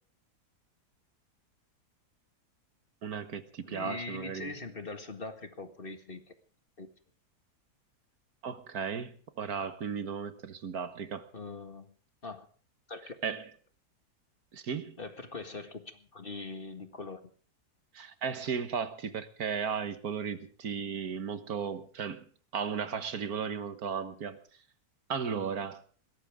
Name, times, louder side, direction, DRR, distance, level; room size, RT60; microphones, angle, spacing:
voice 1, 3.0-4.5 8.4-11.2 13.2-13.5 14.5-15.0 17.9-22.2 22.5-24.4 25.1-25.8, right 6 dB, 65° right, 1.7 m, -35 dB
voice 2, 3.6-6.4 6.8-6.9 11.3-11.9 12.2-12.5 12.9-13.2 15.0-17.3, left 3 dB, 35° left, 1.9 m, -42 dB
21.5 x 17.5 x 3.6 m
omnidirectional pair, 1.7 m